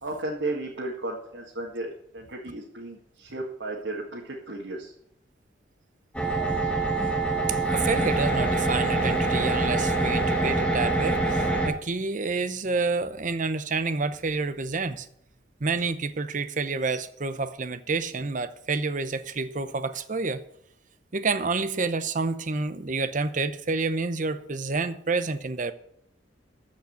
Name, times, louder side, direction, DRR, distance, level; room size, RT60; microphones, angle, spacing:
voice 1, 0.0-4.9, right 2 dB, 75° right, -2 dB, 2.0 m, -34 dB
sound 1, 6.1-11.7, right 2 dB, 5° left, 1.7 m, -25 dB
voice 2, 7.5-15.1 15.6-20.4 21.1-25.7, right 4 dB, 45° right, 13 dB, 0.7 m, -29 dB
14.0 x 5.3 x 7.9 m, 0.71 s
head